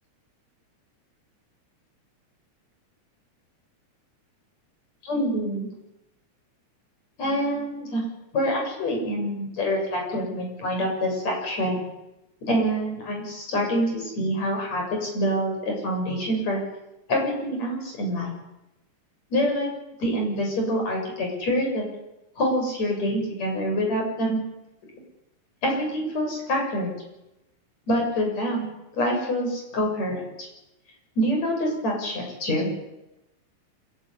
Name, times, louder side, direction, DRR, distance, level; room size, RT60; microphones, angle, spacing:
voice 1, 5.0-5.7 7.2-8.0 8.3-11.8 12.5-16.6 17.1-18.3 19.3-19.7 20.0-21.8 22.4-24.4 25.6-26.9 27.9-28.7 28.9-30.5 31.2-32.7, equal, 60° left, 1 dB, 8.5 m, -26 dB
26.0 x 16.0 x 9.9 m, 0.94 s
omnidirectional pair, 3.5 m